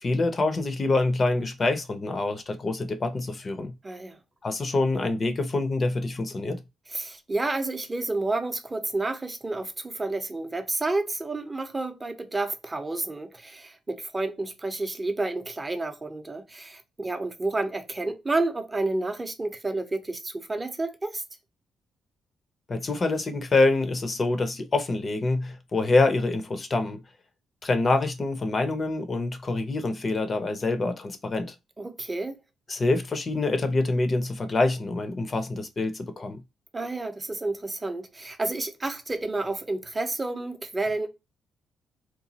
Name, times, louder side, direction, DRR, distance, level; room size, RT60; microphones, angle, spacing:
voice 1, 0.0-3.7 4.4-6.6 22.7-27.0 27.6-31.5 32.7-36.4, left 2 dB, 35° left, 0.5 m, -26 dB
voice 2, 3.8-4.2 6.9-21.2 31.8-32.4 36.7-41.1, right 2 dB, 20° right, 0.6 m, -30 dB
2.9 x 2.2 x 2.7 m
cardioid pair, 95°, 0 cm